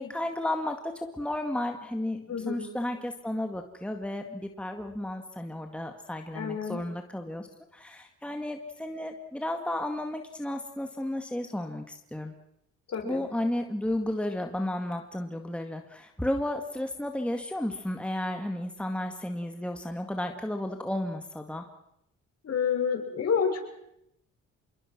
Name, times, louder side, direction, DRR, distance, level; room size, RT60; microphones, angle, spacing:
voice 1, 0.0-7.5 7.7-12.3 13.0-21.7, left 1 dB, 5° left, 4 dB, 2.0 m, -33 dB
voice 2, 2.3-2.6 6.3-6.8 12.9-13.2 22.4-23.6, left 6 dB, 55° left, 3 dB, 6.6 m, -29 dB
27.0 x 22.5 x 6.2 m, 0.78 s
cardioid pair, 90°, 30 cm